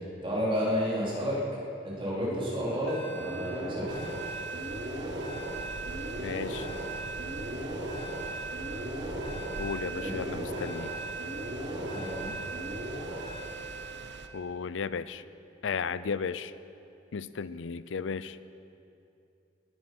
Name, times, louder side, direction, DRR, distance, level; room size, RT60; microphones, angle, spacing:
voice 1, 0.2-1.4 1.8-4.0 9.9-10.1 11.7-12.3, equal, 30° right, -6 dB, 4.1 m, -31 dB
sound 1, 2.2-14.3, right 2 dB, 90° right, 3.6 m, -37 dB
sound 2, 3.9-14.3, right 3 dB, 65° right, 0.8 m, -45 dB
voice 2, 6.2-6.7 9.6-10.9 14.3-15.2 15.6-16.5 17.1-18.4, left 5 dB, 80° left, 16 dB, 0.5 m, -34 dB
19.5 x 9.9 x 6.1 m, 2.7 s
head